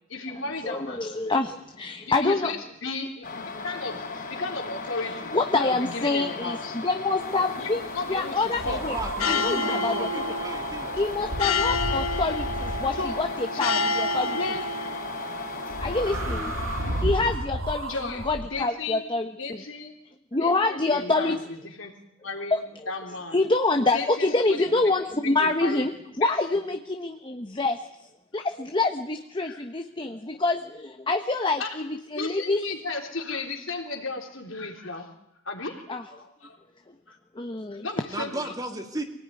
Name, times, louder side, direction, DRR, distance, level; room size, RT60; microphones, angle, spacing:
voice 1, 0.1-1.1 2.0-6.8 7.6-7.7 7.9-8.8 13.0-13.2 13.5-14.6 17.9-19.1 19.4-19.9 20.4-21.9 22.2-23.4 23.9-24.9 25.2-25.9 26.2-26.3 29.4-29.6 31.6-31.8 32.1-35.1 35.4-36.6 37.1-37.2 37.8-38.5, left 3 dB, 65° left, 2 dB, 3.7 m, -35 dB
voice 2, 0.6-2.5 5.3-7.8 8.1-9.0 9.3-10.1 10.9-14.4 15.8-16.5 17.0-19.6 20.3-21.4 22.5-22.6 23.3-25.9 26.2-27.9 28.3-32.6 35.9-36.0 37.3-37.9 38.4-38.5, left 3 dB, 25° left, 6 dB, 1.0 m, -26 dB
sound 1, 3.2-17.0, left 3 dB, 45° left, 5.3 m, -37 dB
sound 2, 7.2-16.3, left 3 dB, 85° left, 1.1 m, -31 dB
voice 3, 8.4-10.9 16.3-16.6 38.1-39.0, right 1 dB, 20° right, 4 dB, 2.5 m, -35 dB
sound 3, 8.5-13.3 15.7-18.4, right 1 dB, 75° right, 3.9 m, -33 dB
24.5 x 18.0 x 9.7 m, 0.82 s
head